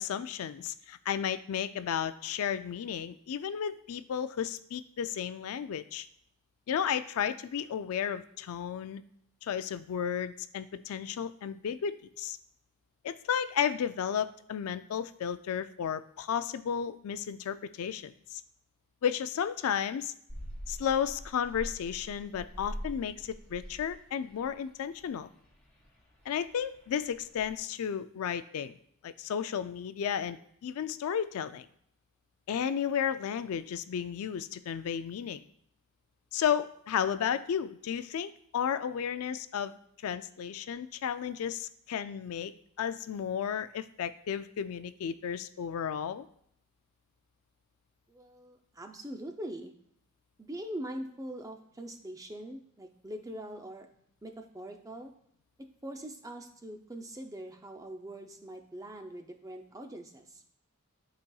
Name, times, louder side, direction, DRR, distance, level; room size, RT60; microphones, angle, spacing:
voice 1, 0.0-6.1 6.7-9.0 9.4-12.4 13.0-18.4 19.0-20.1 20.7-25.3 26.3-28.8 29.0-31.7 32.5-35.4 36.3-39.8 40.0-42.5 42.8-46.3, left 8 dB, 75° left, 12 dB, 0.3 m, -33 dB
sound 1, 20.3-27.6, equal, 5° left, 2.0 m, -45 dB
voice 2, 48.1-49.7 50.4-53.9 54.2-55.1 55.8-60.4, right 1 dB, 15° right, 5 dB, 0.5 m, -42 dB
11.5 x 4.0 x 2.3 m, 0.69 s
head